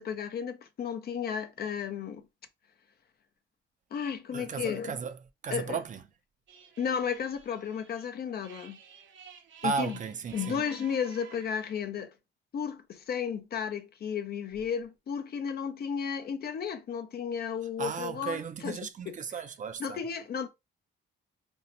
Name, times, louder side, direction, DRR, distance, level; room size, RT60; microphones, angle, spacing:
voice 1, 0.0-2.2 3.9-4.9 5.5-5.8 6.8-8.8 9.6-10.0 10.3-12.1 12.5-18.8 19.1-19.2 19.8-20.5, left 7 dB, 55° left, 0.6 m, -33 dB
voice 2, 4.3-5.2 5.4-6.0 9.6-10.6 17.8-20.0, right 6 dB, 40° right, 0.4 m, -35 dB
sound 1, 6.5-11.8, right 8 dB, 70° right, 0.7 m, -53 dB
2.7 x 2.1 x 3.9 m
cardioid pair, 90°, 20 cm